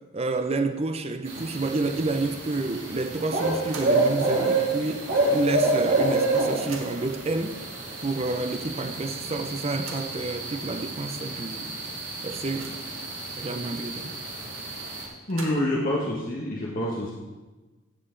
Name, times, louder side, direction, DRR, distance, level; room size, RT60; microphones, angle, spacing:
voice 1, 0.1-7.6 8.0-11.8 12.2-12.8 13.4-14.1, right 3 dB, 30° right, 0.6 m, -29 dB
sound 1, 1.2-15.0, right 2 dB, 60° right, 3.1 m, -28 dB
sound 2, 3.6-4.1 4.5-4.6 5.7-5.8 6.1-7.2 7.9-8.0 8.4-8.5 9.5-10.2 10.9-11.0 11.4-11.5 12.0-13.0 15.0-15.9, right 4 dB, 80° right, 1.6 m, -44 dB
voice 2, 15.3-17.1, left 1 dB, 45° left, 1.3 m, -27 dB
15.5 x 7.8 x 3.8 m
head